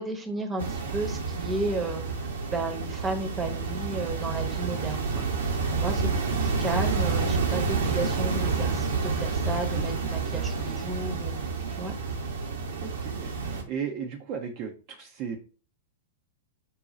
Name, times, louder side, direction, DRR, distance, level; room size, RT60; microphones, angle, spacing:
voice 1, 0.0-2.0 2.5-5.3 5.7-11.4 11.8-11.9, right 2 dB, 10° right, 3 dB, 0.8 m, -33 dB
sound 1, 0.6-13.6, right 4 dB, 65° right, 0.9 m, -29 dB
voice 2, 12.8-13.3 13.7-15.4, right 7 dB, 40° right, 2 dB, 0.5 m, -35 dB
5.5 x 2.3 x 3.8 m, 0.38 s
figure-of-eight pair, 100°, 0 cm